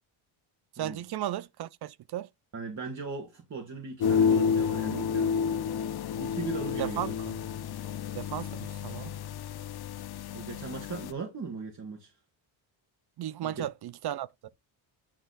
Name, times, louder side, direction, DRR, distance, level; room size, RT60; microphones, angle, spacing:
voice 1, 0.8-2.3 6.8-7.4 8.1-9.1 13.2-14.5, right 12 dB, 55° right, 0.5 m, -35 dB
voice 2, 2.5-5.4 6.2-7.1 10.3-12.1 13.4-13.7, right 4 dB, 35° right, 1.8 m, -38 dB
sound 1, 4.0-11.1, left 6 dB, 50° left, 0.7 m, -30 dB
9.1 x 3.4 x 4.0 m
cardioid pair, 115°, 48 cm